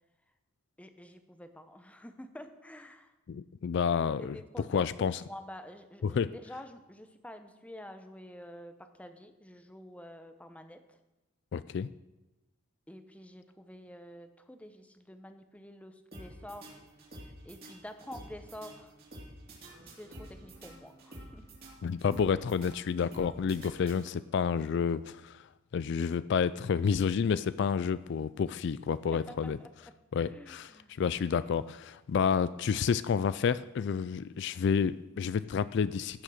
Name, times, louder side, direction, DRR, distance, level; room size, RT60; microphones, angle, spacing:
voice 1, 0.8-3.1 4.2-11.0 12.9-16.8 17.1-18.9 19.8-21.5 28.4-28.5 29.1-29.7 30.3-30.9, left 1 dB, 5° left, 8 dB, 0.9 m, -48 dB
voice 2, 3.3-4.3 4.7-5.2 6.0-6.3 11.5-11.9 21.8-25.4 25.7-29.6 30.1-30.7 31.0-36.2, left 6 dB, 60° left, 16 dB, 0.3 m, -29 dB
sound 1, 16.1-24.4, right 1 dB, 50° right, 3.3 m, -50 dB
15.5 x 6.4 x 6.4 m, 1.1 s
head